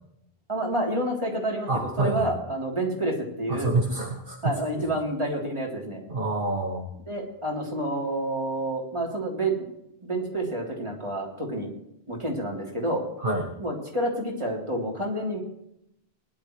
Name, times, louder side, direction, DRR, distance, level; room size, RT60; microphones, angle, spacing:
voice 1, 0.5-3.8 4.4-6.0 7.1-9.7 10.0-11.7 12.1-13.0 13.6-15.4, right 1 dB, 30° right, -2 dB, 3.6 m, -29 dB
voice 2, 1.7-2.3 3.5-4.8 6.1-6.9 13.2-13.5, right 2 dB, 60° right, 0 dB, 1.6 m, -27 dB
20.0 x 11.5 x 3.2 m, 0.75 s
omnidirectional pair, 1.0 m